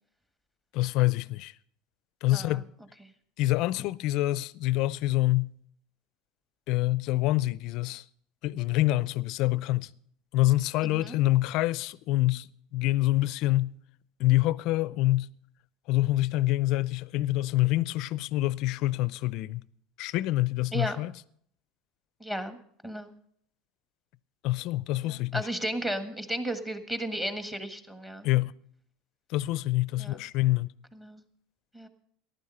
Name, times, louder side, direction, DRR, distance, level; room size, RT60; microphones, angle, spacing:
voice 1, 0.7-1.5 2.2-2.6 3.4-5.5 6.7-8.0 8.4-9.9 10.3-13.8 14.2-15.3 15.9-19.7 20.0-21.1 24.4-25.5 28.2-28.5 29.3-30.7, left 17 dB, 60° left, 0.5 m, -26 dB
voice 2, 22.2-22.6 22.8-23.1 25.3-28.3 30.0-30.2 31.0-31.2 31.7-31.9, right 1 dB, 10° right, 1.5 m, -34 dB
14.5 x 11.5 x 5.6 m
supercardioid pair, 130°, 0 cm